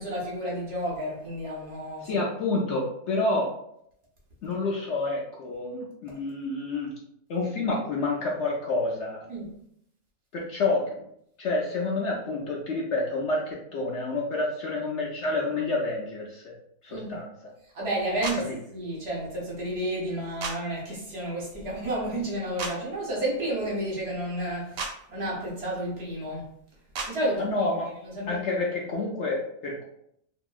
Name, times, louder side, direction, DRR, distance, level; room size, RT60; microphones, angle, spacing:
voice 1, 0.0-2.2 9.3-9.5 16.9-17.2 17.7-26.5 27.1-27.7 28.0-28.6, right 1 dB, 50° right, -4 dB, 1.0 m, -31 dB
voice 2, 2.0-3.5 4.4-6.9 7.3-9.3 10.3-11.0 11.4-16.5 16.8-17.3 18.5-18.6 27.4-27.9 28.3-29.8, left 2 dB, 65° left, -2 dB, 0.8 m, -28 dB
sound 1, 18.2-18.4 20.4-20.6 22.6-22.7 24.8-24.9 26.9-27.1, right 4 dB, 80° right, 1.0 m, -31 dB
2.7 x 2.6 x 2.3 m, 0.71 s
omnidirectional pair, 1.4 m